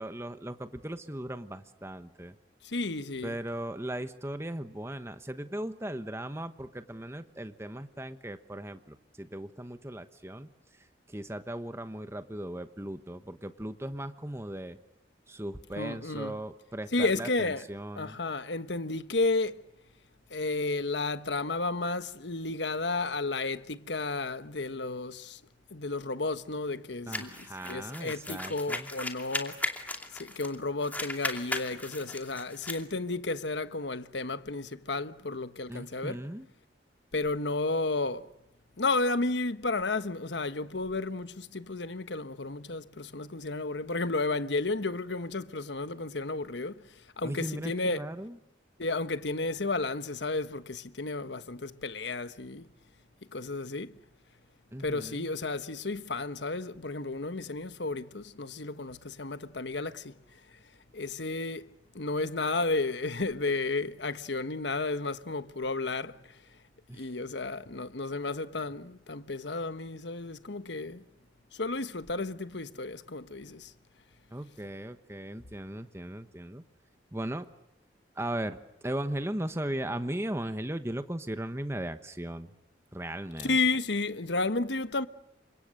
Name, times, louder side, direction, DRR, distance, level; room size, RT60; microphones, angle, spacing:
voice 1, 0.0-2.3 3.2-14.8 15.3-18.2 27.1-28.9 35.7-36.5 47.2-48.4 54.7-55.3 66.9-67.1 74.3-76.6 77.1-77.5 78.1-78.6 78.8-82.5 82.9-83.6, right 1 dB, 15° right, 1.1 m, -37 dB
voice 2, 2.6-3.3 15.8-16.4 16.9-17.6 18.0-19.6 20.3-25.4 25.7-27.4 27.7-29.6 30.1-36.2 37.1-38.3 38.8-46.8 47.2-48.0 48.8-52.7 53.3-53.9 54.8-60.1 60.9-61.7 61.9-66.4 66.9-71.0 71.5-73.7 83.4-85.1, left 3 dB, 75° left, 1.3 m, -32 dB
sound 1, 27.1-30.6 30.8-32.8, left 2 dB, 10° left, 2.6 m, -36 dB
29.5 x 26.0 x 6.6 m
head